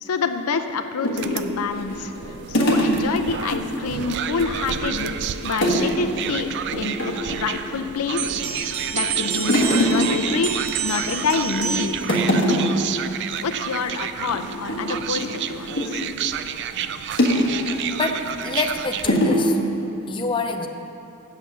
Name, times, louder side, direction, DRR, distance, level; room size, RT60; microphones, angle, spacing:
voice 1, 0.0-2.1 2.5-5.2 5.4-6.5 6.7-8.3 8.9-12.3 13.4-16.0, left 4 dB, 85° left, 8 dB, 0.5 m, -27 dB
sound 1, 1.0-3.6 3.9-4.1 4.4-5.0 5.6-6.0 6.2-6.4 6.7-7.5 8.1-8.6 8.9-11.1 11.5-11.7 12.0-12.9 13.2-13.4 13.7-13.9 14.3-16.1 17.2-17.9 18.5-18.6 19.1-19.5, equal, 55° left, 1.5 m, -23 dB
sound 2, 1.2-19.2, right 8 dB, 50° right, 0.3 m, -31 dB
sound 3, 8.2-12.1, right 7 dB, 80° right, 0.9 m, -29 dB
voice 2, 17.9-19.6 20.1-20.7, left 3 dB, 20° left, 4 dB, 0.5 m, -26 dB
8.1 x 7.4 x 6.7 m, 2.9 s
head